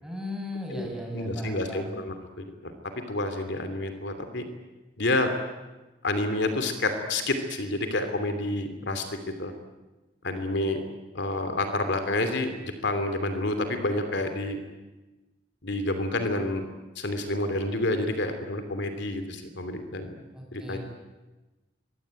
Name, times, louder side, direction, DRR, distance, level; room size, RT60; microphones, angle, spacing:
voice 1, 0.0-1.9 20.3-20.8, left 1 dB, 5° right, 0 dB, 6.2 m, -36 dB
voice 2, 0.7-2.7 3.1-4.4 5.0-5.3 6.0-9.5 10.2-10.8 11.1-14.6 15.6-16.6 17.0-20.1 20.5-20.8, left 2 dB, 65° left, 7 dB, 2.9 m, -29 dB
26.0 x 23.5 x 9.1 m, 1.1 s
head